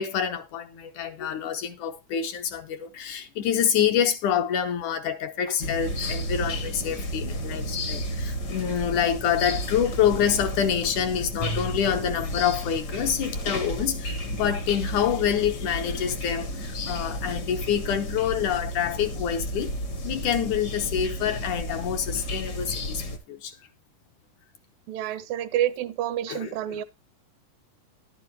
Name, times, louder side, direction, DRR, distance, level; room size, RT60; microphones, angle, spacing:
voice 1, 0.0-19.7 20.0-23.6 26.3-26.8, left 8 dB, 70° left, 2.2 m, -27 dB
sound 1, 5.6-23.2, equal, 50° left, 1.1 m, -32 dB
voice 2, 24.9-26.8, right 12 dB, 80° right, 2.3 m, -28 dB
11.5 x 9.9 x 2.9 m
omnidirectional pair, 4.0 m